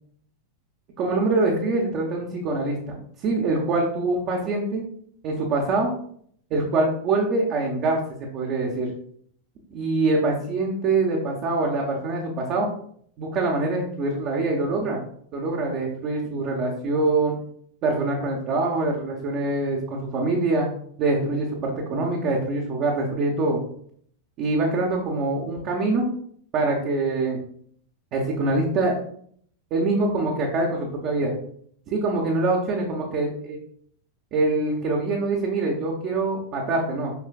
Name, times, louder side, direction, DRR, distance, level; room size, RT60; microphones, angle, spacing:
voice 1, 1.0-4.8 5.2-5.9 6.5-8.0 8.3-8.9 9.7-12.7 13.2-15.0 15.3-17.4 17.8-20.7 21.0-23.6 24.4-26.0 26.5-27.4 28.1-28.9 29.7-31.3 31.9-33.6 34.3-37.1, right 2 dB, 40° right, -2 dB, 1.2 m, -24 dB
7.0 x 5.6 x 2.5 m, 0.63 s
figure-of-eight pair, 90°, 0 cm